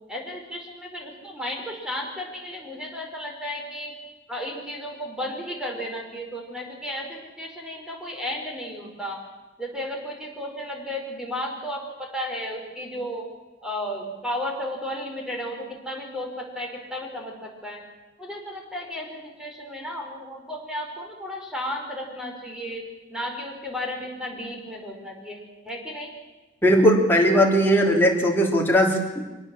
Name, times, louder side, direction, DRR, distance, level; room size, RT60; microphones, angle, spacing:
voice 1, 0.1-3.9 4.3-7.1 7.4-9.2 9.6-11.8 12.1-13.2 13.6-15.6 15.8-17.3 17.6-17.8 18.2-22.8 23.1-26.1, left 1 dB, 5° right, 1 dB, 4.7 m, -33 dB
voice 2, 26.6-29.2, equal, 10° left, 0 dB, 3.4 m, -19 dB
24.5 x 18.5 x 7.6 m, 1.2 s
head